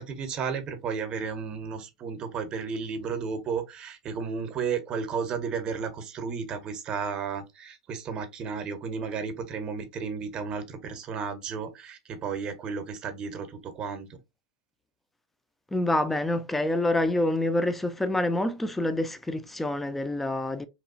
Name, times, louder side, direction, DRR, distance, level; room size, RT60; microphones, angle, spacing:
voice 1, 0.0-14.2, right 6 dB, 35° right, 0.7 m, -33 dB
voice 2, 15.7-20.6, left 1 dB, 5° left, 0.4 m, -27 dB
2.9 x 2.3 x 2.4 m
hypercardioid pair, 95°, 2 cm